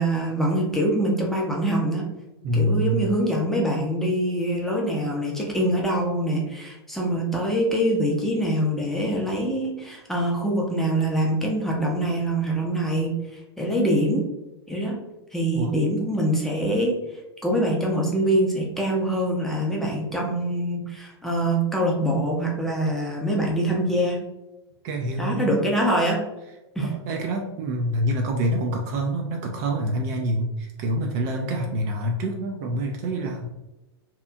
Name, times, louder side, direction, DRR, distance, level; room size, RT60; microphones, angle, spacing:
voice 1, 0.0-2.0 2.5-13.1 13.6-14.2 14.7-15.0 15.3-16.9 17.4-24.2 25.2-26.2 26.8-26.9, right 1 dB, ahead, -2 dB, 0.6 m, -24 dB
voice 2, 2.4-3.0 15.5-15.8 24.8-25.6 26.8-33.5, right 1 dB, 40° right, 2 dB, 0.4 m, -26 dB
2.8 x 2.3 x 2.3 m, 0.97 s
figure-of-eight pair, 95°, 14 cm